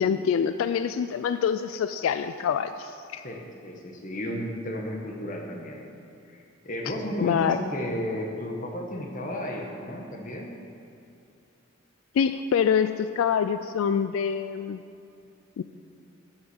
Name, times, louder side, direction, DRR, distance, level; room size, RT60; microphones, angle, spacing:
voice 1, 0.0-3.2 7.2-7.6 12.2-14.8 15.6-15.7, left 7 dB, 85° left, 11 dB, 0.3 m, -25 dB
voice 2, 3.2-5.8 6.3-10.5, equal, 40° left, 1 dB, 1.2 m, -33 dB
8.0 x 7.3 x 7.1 m, 2.5 s
head